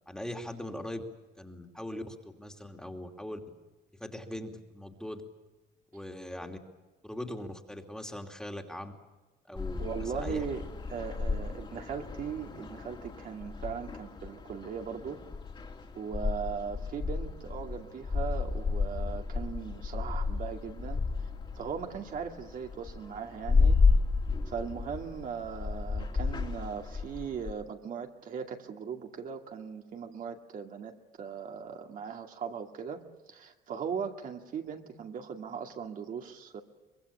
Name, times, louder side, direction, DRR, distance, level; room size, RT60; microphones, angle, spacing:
voice 1, 0.1-1.0 1.4-3.4 4.0-5.2 5.9-6.6 7.0-8.9 9.5-10.4, left 1 dB, 5° left, 3 dB, 2.7 m, -40 dB
sound 1, 9.6-27.5, left 4 dB, 30° left, 2.9 m, -32 dB
voice 2, 9.8-10.6 10.9-15.2 15.9-21.0 21.6-23.8 24.5-33.0 33.3-36.6, right 6 dB, 55° right, 3 dB, 2.4 m, -39 dB
24.0 x 21.5 x 8.5 m, 1.2 s
cardioid pair, 110°, 17 cm